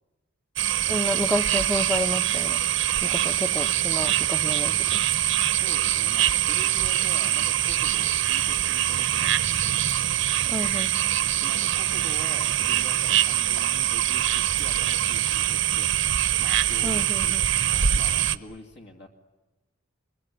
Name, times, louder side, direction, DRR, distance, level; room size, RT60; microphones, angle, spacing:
sound 1, 0.6-18.4, right 11 dB, 60° right, 0.9 m, -24 dB
voice 1, 0.9-2.6 3.1-5.0 10.5-11.0 16.8-17.4, left 1 dB, 5° left, 9 dB, 0.9 m, -30 dB
voice 2, 5.5-9.8 11.4-15.9 16.4-19.1, equal, 55° left, 3 dB, 2.7 m, -44 dB
25.0 x 22.5 x 9.6 m, 1.1 s
head